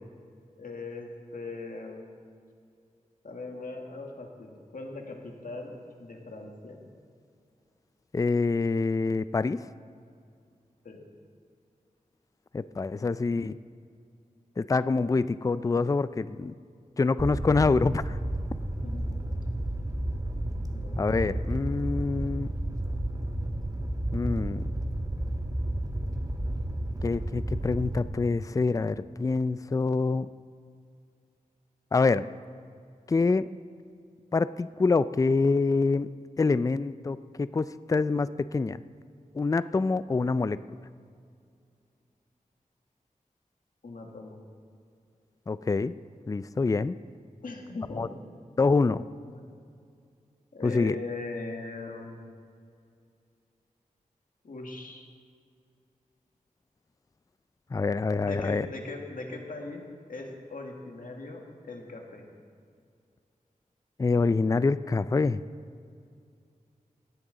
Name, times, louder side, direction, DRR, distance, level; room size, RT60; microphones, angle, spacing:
voice 1, 0.6-2.1 3.2-5.7 6.0-6.9 10.8-11.0 18.8-19.4 20.7-21.4 43.8-44.4 47.4-48.2 49.3-49.4 50.5-52.2 54.4-55.0 58.2-59.8 60.1-62.2, left 3 dB, 75° left, 1 dB, 1.7 m, -40 dB
voice 2, 8.1-9.7 12.5-13.6 14.6-16.5 17.0-18.2 21.0-22.5 24.1-24.6 27.0-30.3 31.9-32.2 33.1-33.5 34.3-36.1 36.4-38.8 39.3-40.6 45.5-45.9 46.3-47.0 48.0-48.1 48.6-49.0 50.6-50.9 57.7-58.7 64.0-65.4, left 4 dB, 25° left, 15 dB, 0.3 m, -26 dB
Fire, 17.2-28.0, right 1 dB, 25° right, 1.2 m, -32 dB
17.5 x 10.0 x 4.0 m, 2.3 s
wide cardioid pair, 65°, 14 cm